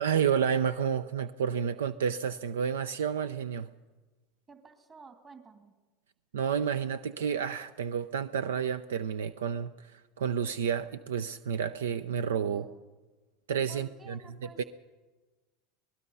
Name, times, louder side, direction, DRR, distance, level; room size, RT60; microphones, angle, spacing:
voice 1, 0.0-3.7 6.3-12.7 13.5-14.6, right 7 dB, 85° right, 13 dB, 0.6 m, -30 dB
voice 2, 4.5-5.7 12.5-12.8 13.7-14.6, right 4 dB, 30° right, 5 dB, 2.6 m, -52 dB
25.5 x 19.5 x 5.5 m, 1.3 s
hypercardioid pair, 90°, 0 cm